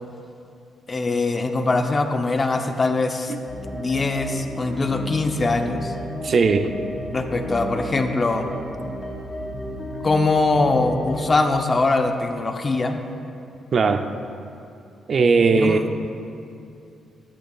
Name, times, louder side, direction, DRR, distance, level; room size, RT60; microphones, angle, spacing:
voice 1, 0.9-3.3 3.7-5.9 7.1-8.5 10.0-13.0 15.6-15.8, left 3 dB, 30° left, 5 dB, 0.7 m, -22 dB
sound 1, 3.5-11.2, equal, 10° left, 1.8 m, -33 dB
voice 2, 6.2-6.7 13.7-14.2 15.1-15.8, right 4 dB, 50° right, 8 dB, 0.5 m, -18 dB
13.5 x 10.5 x 2.4 m, 2.6 s
cardioid pair, 110°, 0 cm